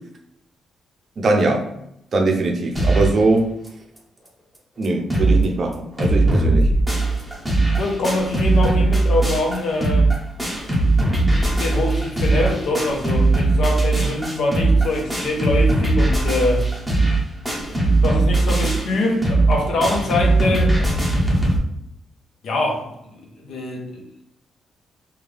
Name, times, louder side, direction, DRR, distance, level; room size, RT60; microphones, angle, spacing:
voice 1, 1.2-1.7 2.1-3.5 4.8-6.7, right 2 dB, 40° right, 3 dB, 0.6 m, -21 dB
sound 1, 2.8-3.2 3.7-3.8 4.0-4.1 4.6-4.7 4.8-5.5 5.7-21.6, right 2 dB, 5° right, 0.7 m, -19 dB
voice 2, 7.8-10.1 11.2-16.7 18.0-21.0 22.4-24.0, left 2 dB, 70° left, 0 dB, 0.8 m, -24 dB
3.5 x 2.3 x 3.3 m, 0.78 s
cardioid pair, 145°, 0 cm